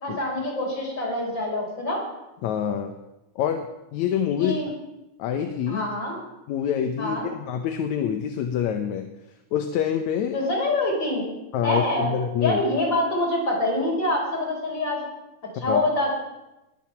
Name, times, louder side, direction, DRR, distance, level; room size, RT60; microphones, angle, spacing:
voice 1, 0.0-2.0 4.4-4.7 5.7-6.2 7.0-7.3 10.3-11.2 11.6-12.1 12.4-15.0 15.5-16.1, left 1 dB, 35° left, -1 dB, 5.0 m, -25 dB
voice 2, 2.4-2.9 3.4-3.7 3.9-4.6 5.2-5.9 6.5-9.1 9.5-10.4 11.5-12.6 15.6-15.8, left 8 dB, 75° left, 6 dB, 2.2 m, -26 dB
21.0 x 9.3 x 5.9 m, 0.95 s
omnidirectional pair, 3.4 m